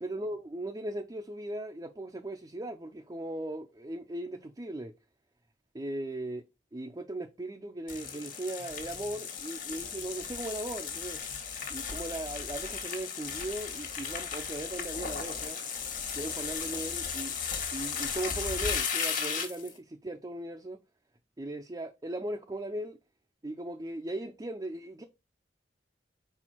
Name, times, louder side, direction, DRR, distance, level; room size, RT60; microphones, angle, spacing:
voice 1, 0.0-4.9 5.7-6.4 6.7-11.2 11.7-15.6 16.1-17.3 17.7-20.8 21.4-23.0 23.4-25.0, right 1 dB, 20° right, 0.5 m, -38 dB
sound 1, 7.9-19.7, left 6 dB, 50° left, 1.4 m, -35 dB
4.9 x 4.4 x 4.4 m
head